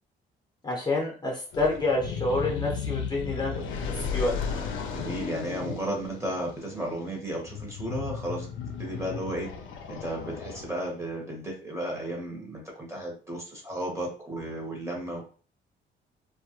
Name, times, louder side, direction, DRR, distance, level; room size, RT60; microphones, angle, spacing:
voice 1, 0.6-4.6, left 2 dB, 20° left, -1 dB, 0.7 m, -28 dB
Dragon Roar, 1.5-11.0, left 6 dB, 80° left, 0.4 m, -35 dB
voice 2, 4.9-8.5 8.8-9.5 9.9-15.2, right 1 dB, 15° right, -1 dB, 0.9 m, -34 dB
2.2 x 2.1 x 2.8 m, 0.39 s
cardioid pair, 90°, 20 cm